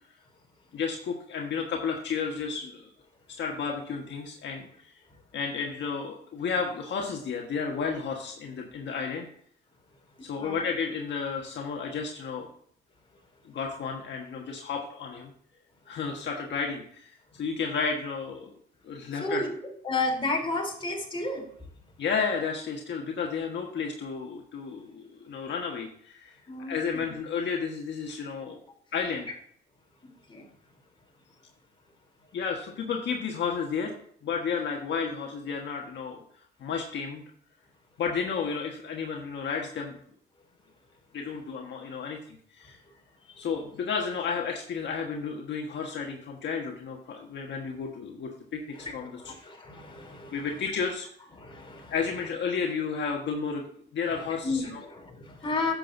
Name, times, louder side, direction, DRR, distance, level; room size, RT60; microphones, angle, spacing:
voice 1, 0.7-2.9 3.3-5.0 5.3-9.3 10.2-12.5 13.4-15.3 15.9-18.6 18.8-19.4 22.0-26.4 26.7-28.6 28.9-29.3 32.3-33.9 34.2-36.2 36.6-37.2 38.0-40.0 41.1-42.8 43.4-49.1 50.3-51.1 51.9-54.8, left 5 dB, 65° left, 1 dB, 1.4 m, -32 dB
voice 2, 10.1-10.6 19.0-21.5 26.5-27.1 30.0-30.5 43.2-43.5 48.7-50.5 51.4-52.0 54.1-55.7, left 2 dB, 25° left, 0 dB, 3.4 m, -33 dB
11.0 x 7.6 x 2.7 m, 0.63 s
cardioid pair, 90°, 20 cm